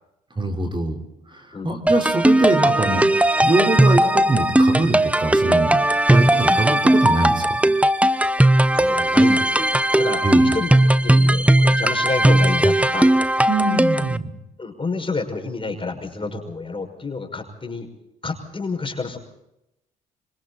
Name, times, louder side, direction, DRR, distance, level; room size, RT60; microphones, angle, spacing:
voice 1, 0.4-1.0 1.3-5.8 6.1-7.6 10.2-10.5 13.5-14.3, right 2 dB, 25° right, 3 dB, 4.3 m, -23 dB
sound 1, 1.9-14.2, right 1 dB, 5° right, 1.0 m, -17 dB
voice 2, 8.7-9.7 9.9-10.2 10.5-10.7 11.0-13.1 14.6-17.9 18.2-19.2, left 3 dB, 30° left, 3 dB, 5.9 m, -29 dB
26.0 x 24.5 x 4.2 m, 0.86 s
hypercardioid pair, 55°, 18 cm